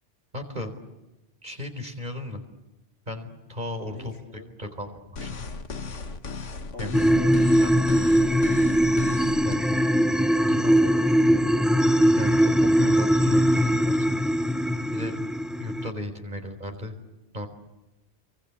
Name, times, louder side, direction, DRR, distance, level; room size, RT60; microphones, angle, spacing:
voice 1, 0.3-0.7 1.4-2.4 3.1-5.5 6.8-7.0 7.6-7.7 8.0-8.1 9.4-9.6 10.4-10.7 12.2-14.0 14.9-15.2 15.6-17.0 17.3-17.5, left 1 dB, 40° right, 5 dB, 4.3 m, -35 dB
voice 2, 3.8-4.5 6.7-7.4 10.4-11.4, left 2 dB, 65° left, -1 dB, 2.9 m, -41 dB
sound 1, 5.2-9.6, left 4 dB, 85° left, 1.9 m, -36 dB
sound 2, 6.9-15.9, equal, ahead, 0.7 m, -21 dB
29.5 x 23.5 x 8.6 m, 1.0 s
omnidirectional pair, 1.2 m